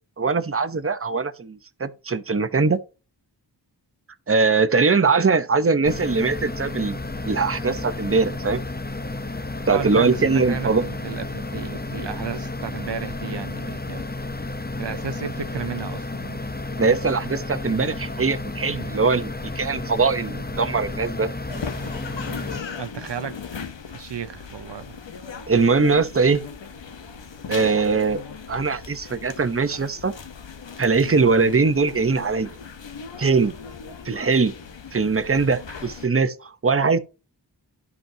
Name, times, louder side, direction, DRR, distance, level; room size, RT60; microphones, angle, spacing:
voice 1, 0.2-2.8 4.3-7.0 7.2-8.6 9.7-10.8 16.8-21.3 25.5-26.4 27.5-28.2 28.5-30.1 30.8-32.5 33.2-33.5 34.0-34.5 34.9-37.0, right 4 dB, 30° right, 0.9 m, -21 dB
sound 1, 5.8-22.6, left 2 dB, 20° left, 0.9 m, -32 dB
voice 2, 9.7-14.0 14.8-16.4 22.7-25.0, right 7 dB, 70° right, 0.8 m, -33 dB
sound 2, 21.5-36.1, left 6 dB, 80° left, 1.1 m, -38 dB
12.0 x 5.4 x 2.8 m
cardioid pair, 40°, 44 cm